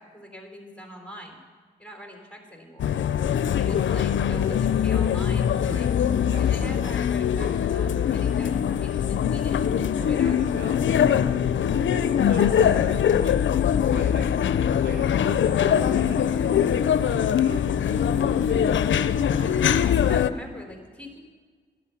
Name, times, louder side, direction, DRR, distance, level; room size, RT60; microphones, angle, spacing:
voice 1, 0.0-1.4 1.8-3.0 3.5-5.9 6.4-9.7 10.1-10.4 12.2-12.8 19.4-21.2, equal, 5° left, 2 dB, 3.8 m, -42 dB
sound 1, 2.8-20.3, left 8 dB, 75° left, 0.5 m, -22 dB
voice 2, 6.3-6.8 10.0-13.4 13.9-18.8 19.3-20.2, right 2 dB, 65° right, 2 dB, 2.0 m, -41 dB
12.0 x 11.0 x 7.1 m, 1.5 s
cardioid pair, 50°, 19 cm